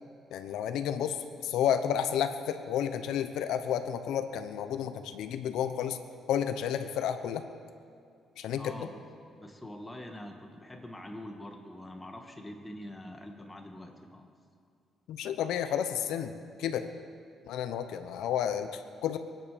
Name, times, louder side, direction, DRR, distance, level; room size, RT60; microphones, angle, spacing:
voice 1, 0.3-1.2 1.4-6.0 6.3-7.4 8.4-8.9 15.1-16.3 16.6-16.9 17.5-19.2, left 9 dB, 85° left, 9 dB, 0.9 m, -31 dB
voice 2, 8.6-9.0 9.3-14.3, left 1 dB, 15° left, 3 dB, 2.0 m, -44 dB
23.0 x 10.5 x 5.3 m, 2.4 s
cardioid pair, 90°, 0 cm